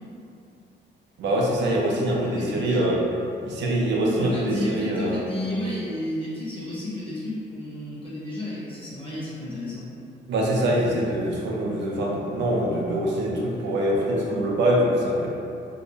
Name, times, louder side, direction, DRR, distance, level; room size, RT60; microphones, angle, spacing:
voice 1, 1.2-3.0 3.4-5.2 10.3-15.3, right 1 dB, 65° right, -3 dB, 0.5 m, -24 dB
voice 2, 2.2-2.8 4.1-9.9, left 1 dB, 25° left, -9 dB, 1.0 m, -32 dB
2.6 x 2.1 x 2.7 m, 2.6 s
cardioid pair, 90°, 20 cm